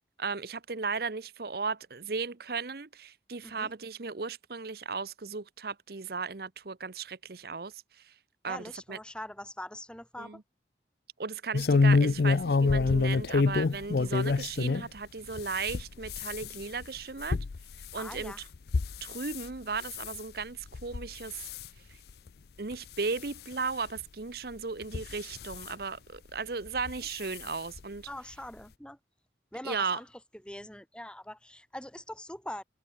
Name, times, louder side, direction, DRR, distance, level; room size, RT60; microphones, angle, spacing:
voice 1, 0.2-8.1 8.4-9.0 10.2-10.4 11.2-17.4 17.9-18.5 19.0-21.5 21.9-22.0 22.6-28.1 29.6-30.0, right 4 dB, 55° right, 0.9 m, -36 dB
voice 2, 8.5-10.4 17.9-18.4 28.1-29.0 29.5-30.1 30.4-32.6, left 1 dB, 5° left, 2.8 m, -42 dB
sound 1, 11.5-14.9 15.3-19.5 19.8-20.2 20.7-21.1 21.4-21.7 22.3-22.4 22.7-22.8 24.0-24.1 24.8-25.6 26.8-27.0 27.3-27.4 27.8-27.9, left 4 dB, 60° left, 0.5 m, -27 dB
head